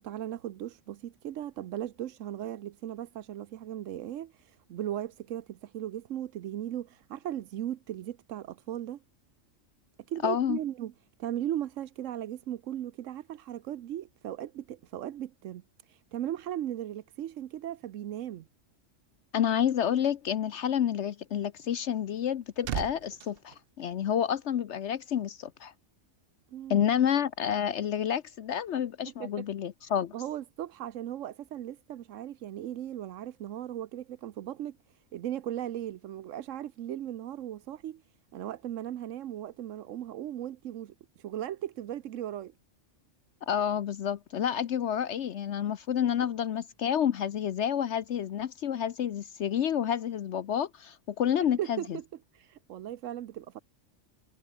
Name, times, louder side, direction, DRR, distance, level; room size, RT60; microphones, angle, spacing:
voice 1, 0.0-9.0 10.1-10.9 11.2-18.5 26.5-26.9 29.1-29.5 30.1-42.5 51.4-52.0 52.3-53.6, right 11 dB, 90° right, 1.1 m, -37 dB
voice 2, 10.2-10.6 19.3-25.7 26.7-30.1 43.4-51.8, left 9 dB, 70° left, 1.0 m, -29 dB
sound 1, 22.0-24.6 24.9-25.1, right 11 dB, 60° right, 0.7 m, -40 dB
omnidirectional pair, 1.3 m